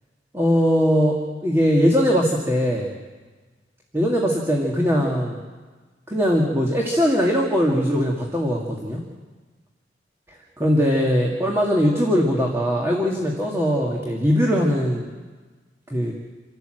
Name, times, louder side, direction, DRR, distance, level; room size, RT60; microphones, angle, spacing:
voice 1, 0.3-1.1 1.4-2.9 3.9-5.4 6.1-9.0 10.6-15.1 15.9-16.1, equal, 15° right, -1 dB, 2.0 m, -20 dB
28.5 x 12.5 x 7.8 m, 1.4 s
head